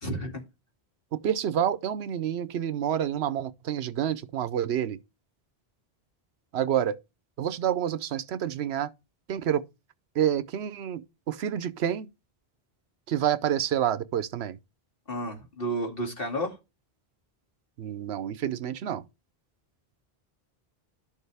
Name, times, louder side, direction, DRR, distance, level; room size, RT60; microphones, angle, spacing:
voice 1, 0.0-0.4 15.1-16.6, right 1 dB, 60° left, 2.5 m, -31 dB
voice 2, 1.1-5.0 6.5-7.0 7.4-8.9 9.3-9.6 10.2-12.1 13.1-14.6 17.8-19.0, right 10 dB, 80° right, 0.9 m, -28 dB
12.0 x 6.6 x 3.4 m
omnidirectional pair, 1.1 m